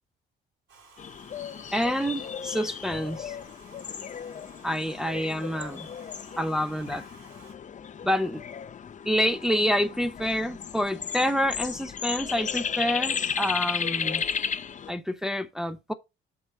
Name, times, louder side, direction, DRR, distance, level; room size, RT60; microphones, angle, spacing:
Domestic sounds home sounds, 0.7-7.5, right 3 dB, 70° right, 3.2 m, -55 dB
sound 1, 1.0-14.9, left 7 dB, 40° left, 0.6 m, -34 dB
voice 1, 1.7-3.4 4.6-5.9 6.4-7.0 8.0-8.4 9.0-14.2 14.9-15.9, equal, 5° right, 0.7 m, -27 dB
8.0 x 2.9 x 5.8 m
cardioid pair, 90°, 20 cm